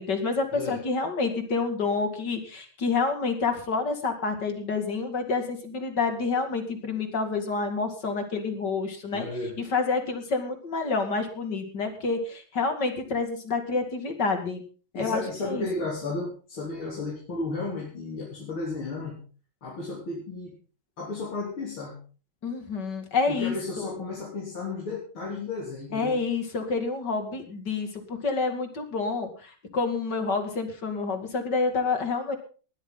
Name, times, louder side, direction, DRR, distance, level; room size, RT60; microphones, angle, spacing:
voice 1, 0.0-9.3 9.6-14.6 14.9-15.6 22.4-23.9 25.9-32.4, left 4 dB, 55° left, 6 dB, 3.0 m, -28 dB
voice 2, 9.1-9.5 14.9-19.2 19.6-20.5 21.0-22.0 23.3-26.2, left 3 dB, 80° left, -4 dB, 4.3 m, -33 dB
19.5 x 13.0 x 3.9 m, 0.38 s
omnidirectional pair, 2.2 m